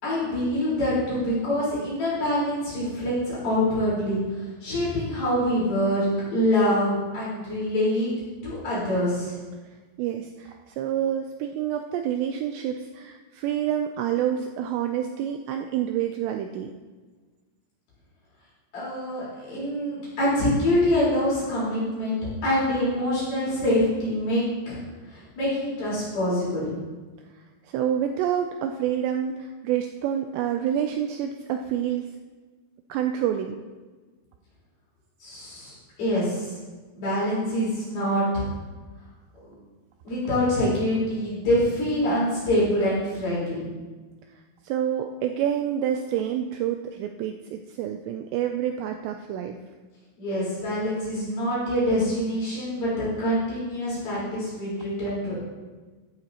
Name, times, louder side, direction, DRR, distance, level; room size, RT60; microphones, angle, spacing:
voice 1, 0.0-8.1 8.4-9.4 18.7-24.8 25.1-26.7 35.2-35.7 36.0-36.5 37.0-38.4 40.0-43.7 50.2-55.4, left 1 dB, 50° left, -10 dB, 5.9 m, -25 dB
voice 2, 10.0-16.7 27.7-32.1 32.9-33.6 44.6-49.6, right 10 dB, 85° right, 5 dB, 2.4 m, -28 dB
14.0 x 12.5 x 2.9 m, 1.4 s
omnidirectional pair, 5.6 m